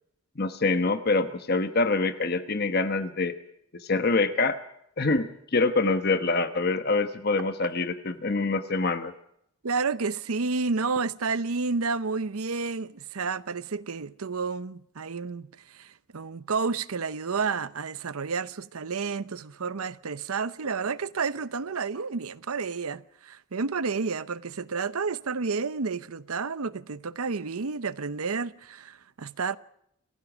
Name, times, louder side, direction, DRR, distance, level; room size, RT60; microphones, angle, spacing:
voice 1, 0.4-3.3 3.7-4.6 5.0-9.1, left 3 dB, 45° left, 1.0 m, -25 dB
voice 2, 9.6-15.5 15.7-29.6, right 4 dB, 90° right, 0.8 m, -30 dB
27.5 x 16.0 x 6.2 m
head